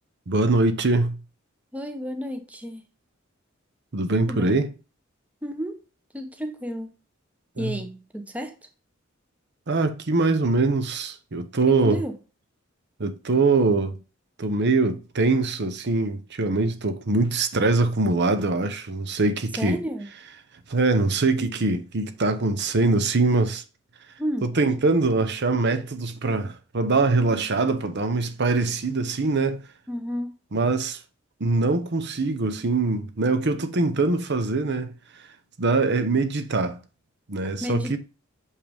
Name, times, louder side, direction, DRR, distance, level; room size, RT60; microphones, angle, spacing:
voice 1, 0.3-1.1 3.9-4.7 7.6-7.8 9.7-12.0 13.0-14.0 14.4-19.8 20.7-23.6 24.4-29.6 30.5-31.0 31.4-34.9 35.6-36.8 37.3-38.0, right 3 dB, 55° right, 0.9 m, -23 dB
voice 2, 1.7-2.8 4.3-4.6 5.4-5.8 6.1-6.9 7.6-8.6 11.7-12.2 19.6-20.1 24.2-24.5 29.9-30.3 37.6-38.0, equal, 5° right, 0.8 m, -31 dB
6.5 x 5.7 x 3.5 m
head